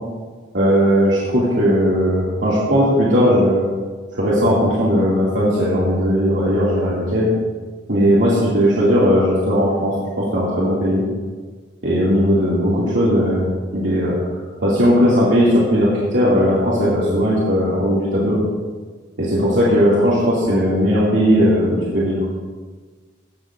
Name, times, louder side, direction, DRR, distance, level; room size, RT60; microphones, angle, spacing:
voice 1, 0.5-3.6 4.1-7.3 7.9-11.0 11.8-14.2 14.6-18.4 19.2-22.2, equal, 85° right, -8 dB, 2.4 m, -17 dB
16.0 x 10.5 x 2.6 m, 1.5 s
head